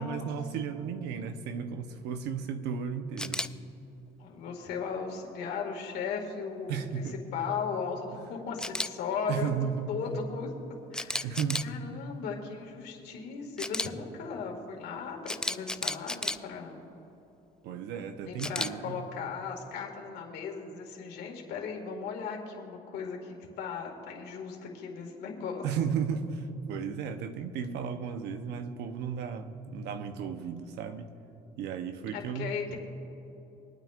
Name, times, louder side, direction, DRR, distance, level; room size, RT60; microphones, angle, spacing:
voice 1, 0.0-3.5 6.7-7.2 9.3-10.2 11.2-11.7 17.6-19.0 25.6-31.1 31.6-32.6, right 7 dB, 85° right, 8 dB, 0.9 m, -34 dB
Camera, 3.2-3.5 8.6-8.9 10.9-11.7 13.6-13.9 15.3-16.4 18.4-18.7, left 1 dB, 5° left, 0.3 m, -32 dB
voice 2, 4.2-7.0 7.3-9.6 9.9-10.5 10.9-11.3 11.6-16.8 18.2-25.6 32.1-32.8, left 5 dB, 75° left, 1 dB, 2.2 m, -37 dB
24.0 x 9.1 x 2.5 m, 3.0 s
cardioid pair, 110°, 17 cm